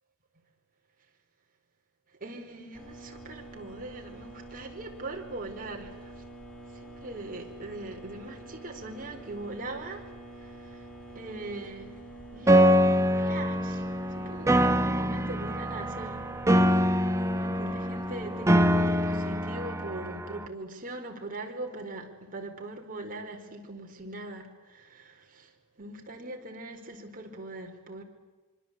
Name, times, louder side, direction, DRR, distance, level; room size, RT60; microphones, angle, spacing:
voice 1, 2.2-6.2 6.7-10.0 10.3-10.9 11.1-12.0 12.3-13.8 14.1-16.2 16.6-17.1 17.4-25.5 25.8-28.0, right 2 dB, 40° right, 2 dB, 4.7 m, -41 dB
sound 1, 2.7-19.0, right 2 dB, 5° left, 4.5 m, -46 dB
Piano, 12.5-20.5, equal, 15° right, 1.2 m, -24 dB
25.5 x 25.0 x 8.4 m, 1.2 s
head